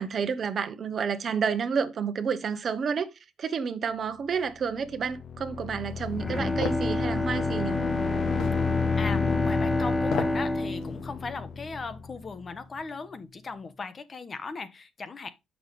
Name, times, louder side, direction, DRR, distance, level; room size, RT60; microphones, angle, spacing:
voice 1, 0.0-3.1 3.4-7.8, right 6 dB, 55° right, 0.9 m, -30 dB
sound 1, 4.6-12.4, left 7 dB, 55° left, 0.6 m, -32 dB
Bowed string instrument, 6.1-12.4 12.8-12.9, left 1 dB, 15° left, 0.9 m, -29 dB
sound 2, 6.6-6.9 8.4-8.6 10.0-10.4 10.8-10.9, left 7 dB, 85° left, 1.1 m, -32 dB
voice 2, 9.0-15.3, left 4 dB, 40° left, 1.0 m, -38 dB
6.8 x 6.2 x 3.4 m
cardioid pair, 90°, 0 cm